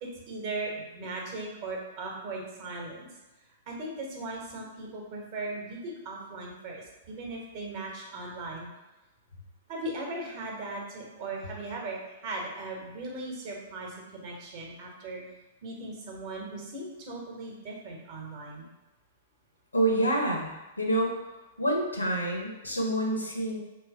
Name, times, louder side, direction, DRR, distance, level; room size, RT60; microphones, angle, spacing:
voice 1, 0.0-3.1 3.7-8.7 9.7-15.2 15.6-18.7, right 2 dB, 40° right, -1 dB, 1.0 m, -38 dB
voice 2, 19.7-21.2 21.6-23.6, right 1 dB, 85° left, 0 dB, 0.8 m, -27 dB
3.1 x 3.0 x 3.6 m, 1.1 s
figure-of-eight pair, 105°, 0 cm